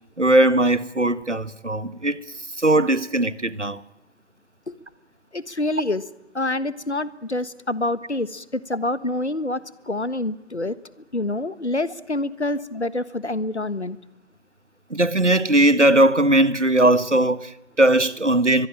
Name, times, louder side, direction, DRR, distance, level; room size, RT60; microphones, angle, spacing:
voice 1, 0.2-2.2 2.6-3.8 14.9-18.7, right 1 dB, 90° right, 1.6 m, -19 dB
voice 2, 5.3-6.0 6.3-10.7 11.1-14.0, left 2 dB, 70° left, 1.5 m, -27 dB
24.0 x 21.0 x 9.1 m
figure-of-eight pair, 170°, 35 cm